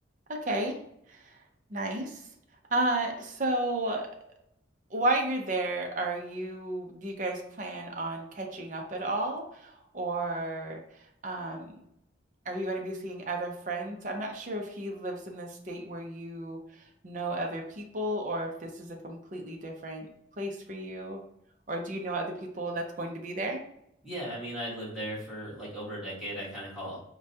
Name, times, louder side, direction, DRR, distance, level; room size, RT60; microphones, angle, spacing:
voice 1, 0.3-0.8 1.1-1.4 1.7-2.3 2.7-4.1 4.9-11.8 12.5-20.1 20.4-21.2 21.7-23.6, right 2 dB, 40° right, 2 dB, 0.6 m, -33 dB
voice 2, 24.0-27.0, equal, 5° right, -9 dB, 1.4 m, -37 dB
4.6 x 2.2 x 2.7 m, 0.75 s
head